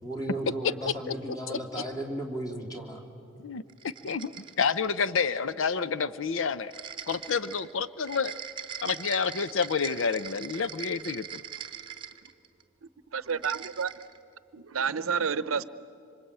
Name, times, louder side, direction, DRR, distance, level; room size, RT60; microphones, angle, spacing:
voice 1, 0.0-3.0, right 1 dB, 20° left, 2 dB, 3.0 m, -35 dB
voice 2, 3.4-4.3 4.6-6.7 7.1-8.4 8.8-11.2, left 5 dB, 70° left, 15 dB, 0.6 m, -29 dB
sound 1, 3.7-5.0 6.7-12.6 13.2-14.2, right 8 dB, 25° right, 1.1 m, -42 dB
voice 3, 13.1-13.9 14.5-15.6, right 6 dB, 90° right, 15 dB, 0.7 m, -29 dB
26.0 x 25.5 x 8.7 m, 2.6 s
head